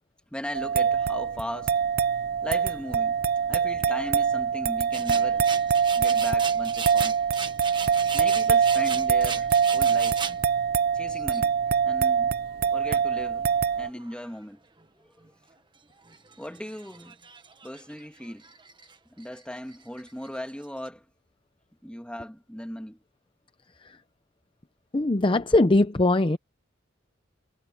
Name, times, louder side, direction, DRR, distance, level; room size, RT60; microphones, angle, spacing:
voice 1, 0.3-1.7 2.4-3.2 3.5-5.5 5.9-7.1 8.1-10.2 10.9-12.4 12.7-13.5 13.8-14.6 16.4-17.2 17.6-18.5 19.2-21.0 21.8-23.0, equal, 5° left, 2.2 m, -38 dB
sound 1, 0.5-13.9, right 7 dB, 55° right, 0.5 m, -24 dB
sound 2, 4.9-10.4 11.1-11.4 12.8-13.5 13.8-14.3 14.8-14.9 15.2-15.3 15.9-19.0 19.2-20.9, right 6 dB, 25° right, 1.4 m, -38 dB
voice 2, 24.9-26.4, left 2 dB, 25° left, 0.7 m, -21 dB
head